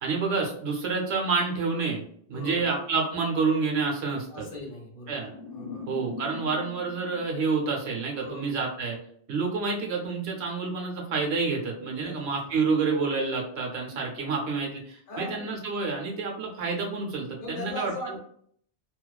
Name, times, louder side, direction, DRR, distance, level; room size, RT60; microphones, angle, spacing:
voice 1, 0.0-2.0 2.3-4.5 5.1-5.3 5.9-9.0 9.3-18.1, right 4 dB, 85° right, 0 dB, 1.0 m, -28 dB
voice 2, 2.3-2.7 4.3-5.2 5.5-5.9 8.2-8.7 11.9-12.3 15.1-15.5 17.4-18.2, left 1 dB, 60° left, -1 dB, 0.9 m, -39 dB
sound 1, 5.3-8.3, left 5 dB, 20° left, 1.0 m, -42 dB
2.4 x 2.3 x 2.2 m, 0.64 s
omnidirectional pair, 1.0 m